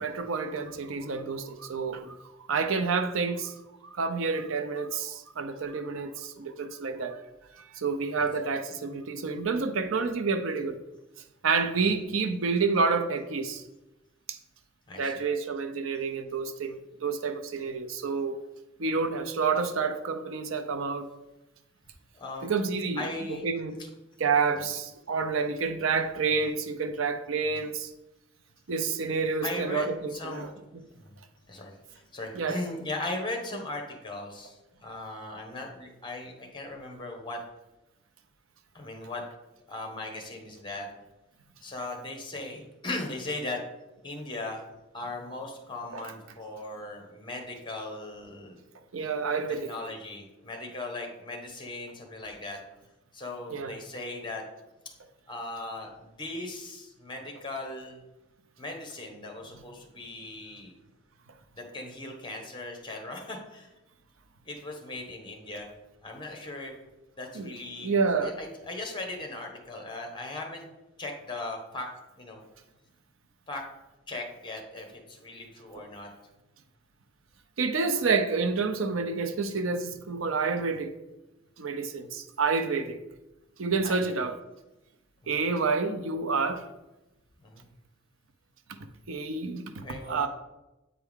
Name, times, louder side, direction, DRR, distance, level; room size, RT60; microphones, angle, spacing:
voice 1, 0.0-2.2 2.5-3.5 3.8-7.2 7.5-10.8 11.4-13.6 14.3-14.4 15.0-18.4 18.8-21.1 22.4-23.8 24.2-27.9 28.7-30.8 32.3-32.6 45.9-46.0 48.9-49.7 53.5-53.7 67.3-67.5 67.8-68.4 75.8-75.9 77.6-80.9 81.6-83.0 83.6-84.4 85.3-86.7 89.1-90.3, right 4 dB, 80° right, 0.6 m, -29 dB
voice 2, 14.9-15.2 22.1-22.5 23.0-23.5 24.6-24.7 26.4-26.5 27.5-27.6 29.4-30.5 31.0-31.1 31.5-34.6 34.8-37.4 38.7-39.2 39.7-40.9 41.6-43.6 44.0-44.6 44.9-48.6 49.6-52.6 53.1-54.4 55.3-58.0 58.6-60.7 61.5-63.7 64.4-65.7 66.0-66.7 67.2-67.9 68.2-70.7 71.0-71.9 72.2-72.4 73.5-73.6 74.1-76.1 83.8-84.1 85.2-85.4 87.4-87.7 89.8-90.3, left 2 dB, 25° left, 1.2 m, -38 dB
8.5 x 4.5 x 3.6 m
head